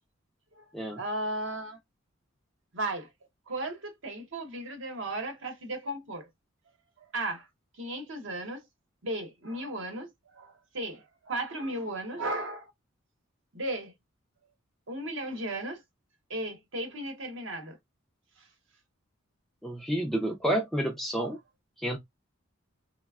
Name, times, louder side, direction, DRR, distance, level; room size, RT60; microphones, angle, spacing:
voice 1, 1.0-1.8 2.7-3.1 3.5-6.3 7.1-7.5 7.8-8.6 9.0-12.7 13.5-13.9 14.9-15.8 16.3-17.8, right 1 dB, 60° right, 0.9 m, -35 dB
voice 2, 19.6-21.4 21.8-22.0, right 1 dB, ahead, 0.4 m, -29 dB
3.2 x 2.1 x 2.2 m
head